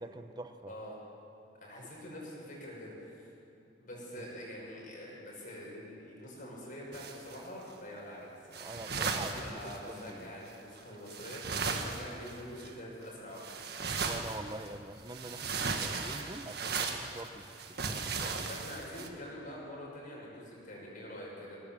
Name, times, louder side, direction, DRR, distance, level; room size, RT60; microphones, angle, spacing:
voice 1, 0.0-0.7 4.2-4.3 8.6-10.3 14.0-17.5 17.9-18.5, right 2 dB, 20° right, 9 dB, 0.9 m, -45 dB
voice 2, 1.6-3.3 3.8-13.9 18.4-21.6, equal, 45° left, -4 dB, 6.4 m, -45 dB
sound 1, 6.9-7.7 8.5-10.1 10.8-10.9 11.1-12.7 13.4-14.7 15.0-19.1, right 5 dB, 60° right, 1.6 m, -36 dB
21.0 x 18.0 x 7.5 m, 2.7 s
head